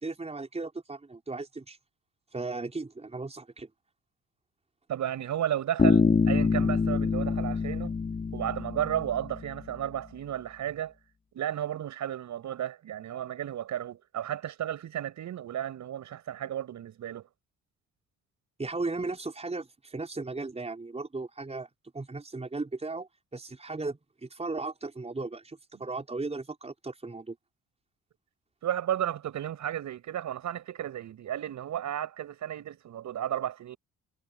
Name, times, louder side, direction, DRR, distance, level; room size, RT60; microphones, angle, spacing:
voice 1, 0.0-1.8 2.3-3.7 18.6-21.7 21.9-27.4, right 3 dB, 20° right, 5.0 m, -36 dB
voice 2, 4.9-7.9 8.3-10.9 11.3-17.3 28.6-33.8, right 11 dB, 70° right, 7.5 m, -33 dB
Bass guitar, 5.8-9.6, left 4 dB, 25° left, 2.4 m, -26 dB
cardioid pair, 90°, 30 cm